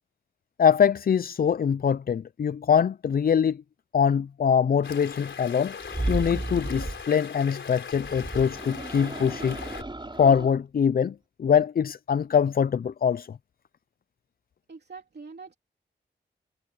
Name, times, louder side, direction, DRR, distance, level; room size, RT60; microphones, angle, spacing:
voice 1, 0.6-3.6 3.9-5.8 6.1-9.6 10.2-13.3, left 7 dB, 50° left, 0.5 m, -23 dB
sound 1, 4.8-9.8, left 6 dB, 80° left, 3.8 m, -40 dB
sound 2, 5.8-7.1 7.9-10.5, right 2 dB, 25° right, 5.4 m, -33 dB
voice 2, 14.7-15.6, right 4 dB, 60° right, 3.3 m, -43 dB
cardioid pair, 50°, 19 cm